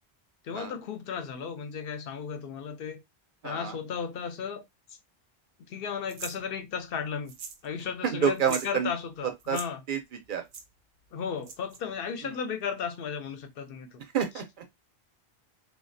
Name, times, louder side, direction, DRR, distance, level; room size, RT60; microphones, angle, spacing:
voice 1, 0.4-3.0 3.4-4.6 5.7-7.3 7.6-9.8 11.1-14.0, left 6 dB, 65° left, 0.7 m, -35 dB
voice 2, 3.4-3.8 8.0-8.9 9.5-9.6 9.9-10.4 12.3-12.4 14.1-14.6, right 7 dB, 60° right, 0.6 m, -28 dB
sound 1, 6.1-6.4 7.3-7.7 7.9-8.0 8.3-8.7 9.4-9.7 10.5-10.6 11.4-11.8, right 6 dB, 90° right, 0.8 m, -40 dB
2.4 x 2.1 x 2.5 m
omnidirectional pair, 1.1 m